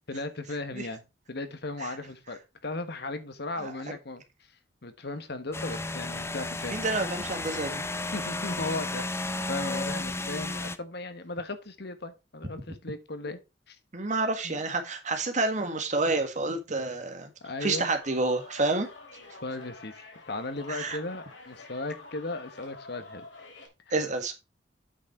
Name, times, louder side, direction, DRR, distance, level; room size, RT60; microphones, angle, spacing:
voice 1, 0.1-4.2 4.8-6.8 8.1-9.1 9.5-13.4 13.7-13.8 14.4-14.6 17.4-17.9 19.4-23.3 23.9-24.0, left 2 dB, 60° left, 1.4 m, -36 dB
sound 1, 5.5-10.8, left 2 dB, 15° left, 0.6 m, -33 dB
voice 2, 6.7-7.9 13.9-17.3 17.6-18.9 20.7-21.0 23.9-24.3, right 3 dB, 40° right, 1.8 m, -29 dB
sound 2, 18.0-23.7, left 3 dB, 75° left, 3.6 m, -48 dB
8.5 x 6.3 x 4.4 m
head